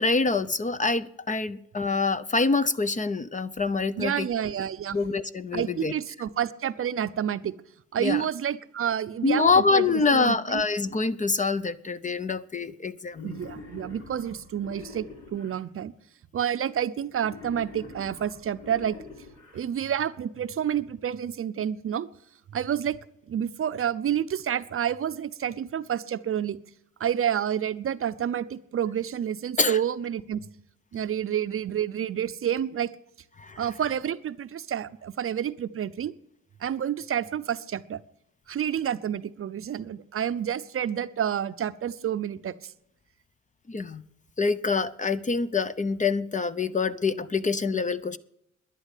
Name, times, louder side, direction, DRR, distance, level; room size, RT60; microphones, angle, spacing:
voice 1, 0.0-4.3 4.9-5.9 8.0-8.2 9.2-13.4 29.6-29.8 33.4-33.6 43.7-44.0 44.4-48.2, left 4 dB, 25° left, 14 dB, 0.7 m, -25 dB
voice 2, 4.0-5.0 5.5-7.5 7.9-10.6 13.2-15.9 16.3-19.0 19.5-22.1 22.5-23.0 23.3-26.6 27.0-30.4 30.9-32.9 33.6-36.1 36.6-38.0 38.5-42.7, right 9 dB, 45° right, 13 dB, 0.7 m, -29 dB
Wild animals, 13.1-15.6 17.1-19.6, left 3 dB, 65° left, 4.4 m, -45 dB
11.5 x 10.5 x 8.3 m, 0.79 s
cardioid pair, 90°, 30 cm